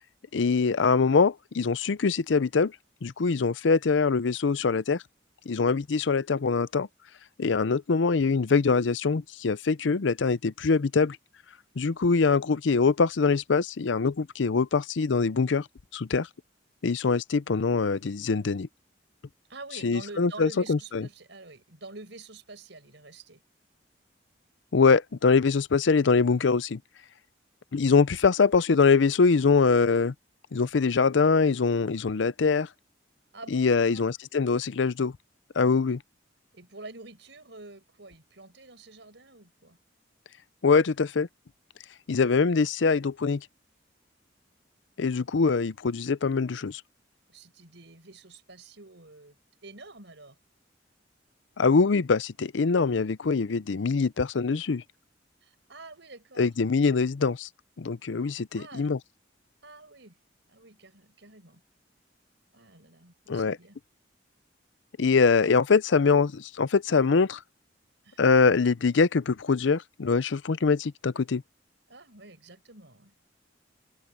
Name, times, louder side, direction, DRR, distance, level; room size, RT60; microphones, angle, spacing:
voice 1, 0.3-2.7 3.0-5.0 5.5-6.9 7.4-11.2 11.8-15.7 15.9-16.3 16.8-18.7 19.8-21.1 24.7-26.8 27.7-30.1 30.5-32.7 33.5-35.1 35.6-36.0 40.6-41.3 42.1-43.4 45.0-46.8 51.6-54.8 56.4-57.5 57.8-59.0 63.3-63.6 65.0-67.4 68.2-71.4, left 4 dB, 75° left, 0.6 m, -23 dB
voice 2, 19.5-23.4 33.3-34.1 36.5-39.8 47.3-49.4 49.6-50.4 55.4-56.5 58.2-58.9 59.6-60.2 60.5-61.6 62.5-63.8 68.0-68.2 71.9-73.1, right 3 dB, 70° right, 6.2 m, -47 dB
head